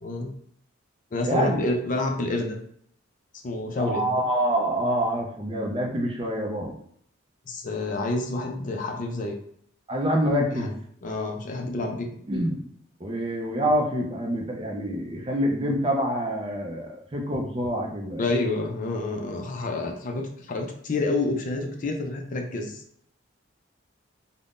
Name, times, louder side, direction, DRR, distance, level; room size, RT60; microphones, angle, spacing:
voice 1, 0.0-0.3 1.1-2.6 3.4-4.1 7.5-9.4 10.5-10.7 11.0-12.1 18.2-22.8, left 2 dB, 40° left, 2 dB, 0.4 m, -28 dB
voice 2, 1.2-1.6 3.8-6.7 9.9-10.8 12.3-12.6 13.0-18.3, equal, 25° right, 0 dB, 0.5 m, -26 dB
3.5 x 2.1 x 2.5 m, 0.67 s
head